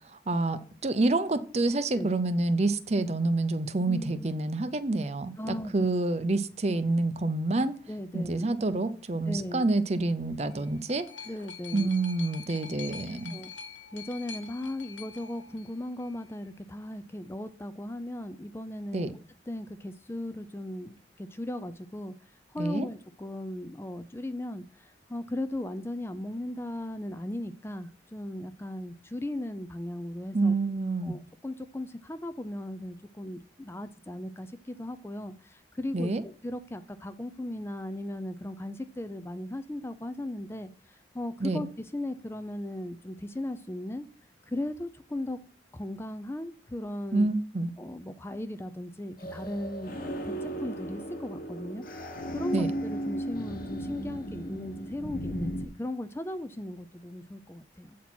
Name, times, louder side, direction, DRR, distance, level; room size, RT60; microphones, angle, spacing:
voice 1, 0.3-7.7 8.1-11.1 11.7-13.4 18.9-19.1 22.6-22.9 30.3-31.2 35.9-36.2 41.4-41.7 47.1-47.7 52.5-52.7, right 2 dB, 35° right, 12 dB, 0.6 m, -28 dB
voice 2, 3.9-4.3 5.4-5.9 7.9-8.5 9.2-9.7 11.3-11.9 13.1-13.5 13.9-19.2 19.5-30.6 31.0-44.1 44.4-45.4 45.7-47.3 47.8-51.8 52.3-58.0, left 1 dB, 15° left, 11 dB, 0.4 m, -37 dB
sound 1, 10.3-16.2 17.1-17.2, left 7 dB, 80° left, 1.1 m, -45 dB
sound 2, 49.2-55.7, right 1 dB, 50° left, 1.2 m, -36 dB
8.3 x 4.3 x 6.0 m, 0.42 s
head